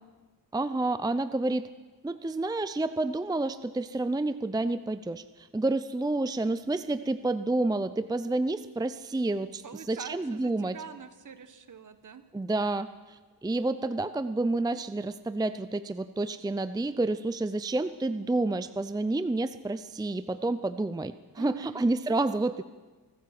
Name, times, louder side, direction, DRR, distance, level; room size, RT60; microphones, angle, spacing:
voice 1, 0.5-1.7 2.0-10.8 12.3-22.6, right 2 dB, 10° right, 12 dB, 0.5 m, -29 dB
voice 2, 9.6-12.2 21.3-21.8, right 7 dB, 50° right, 10 dB, 1.6 m, -44 dB
25.0 x 14.5 x 7.7 m, 1.3 s
wide cardioid pair, 120°, 39 cm